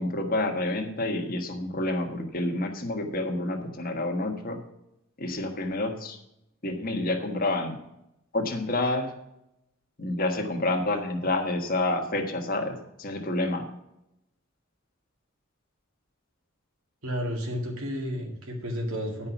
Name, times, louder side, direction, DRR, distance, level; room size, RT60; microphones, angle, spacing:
voice 1, 0.0-4.6 5.2-6.2 6.6-7.8 8.3-9.1 10.0-13.7, left 2 dB, 45° left, 4 dB, 1.4 m, -28 dB
voice 2, 17.0-19.3, equal, 85° right, 0 dB, 2.1 m, -32 dB
9.7 x 5.7 x 7.1 m, 0.84 s
head